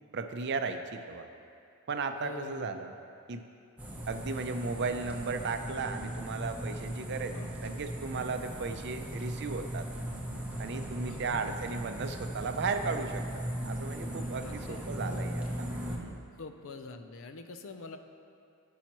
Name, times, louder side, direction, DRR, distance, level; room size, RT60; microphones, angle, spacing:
voice 1, 0.1-1.3 1.9-2.9 3.3-3.4 4.1-9.9 10.6-15.4 16.0-16.2, right 4 dB, 55° right, 7 dB, 0.5 m, -35 dB
voice 2, 2.2-2.8 7.3-7.6 9.0-9.1 11.0-11.4 14.4-15.2 16.4-18.0, left 3 dB, 65° left, 7 dB, 0.6 m, -45 dB
sound 1, 3.8-16.0, right 1 dB, 5° right, 0.8 m, -38 dB
16.0 x 5.6 x 3.0 m, 2.6 s
head